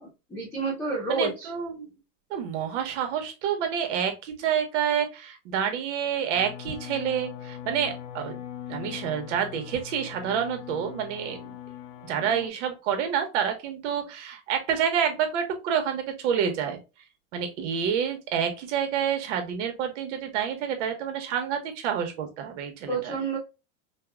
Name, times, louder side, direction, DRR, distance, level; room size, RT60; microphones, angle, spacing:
voice 1, 0.0-1.5 22.9-23.4, right 4 dB, 5° left, -6 dB, 0.8 m, -30 dB
voice 2, 1.1-1.9 2.3-8.4 8.7-11.6 12.0-16.8 17.3-23.1, right 8 dB, 80° right, 5 dB, 1.2 m, -28 dB
sound 1, 6.3-12.5, left 10 dB, 65° left, 0.7 m, -41 dB
4.6 x 2.3 x 2.3 m, 0.28 s
cardioid pair, 180°, 36 cm